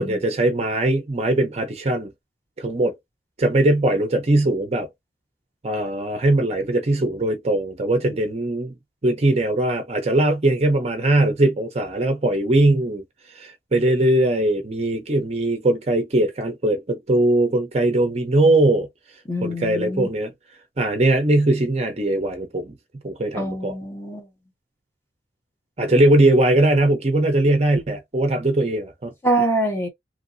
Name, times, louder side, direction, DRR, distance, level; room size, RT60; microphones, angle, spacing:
voice 1, 0.0-2.1 2.6-2.9 3.4-4.9 5.6-8.7 9.0-13.0 13.3-18.9 19.4-20.3 20.8-22.8 23.0-23.7 25.8-29.1, right 1 dB, 35° right, 0.6 m, -20 dB
voice 2, 19.3-20.1 23.3-24.3 29.2-29.9, right 1 dB, 10° left, 1.0 m, -24 dB
3.0 x 2.6 x 2.6 m
head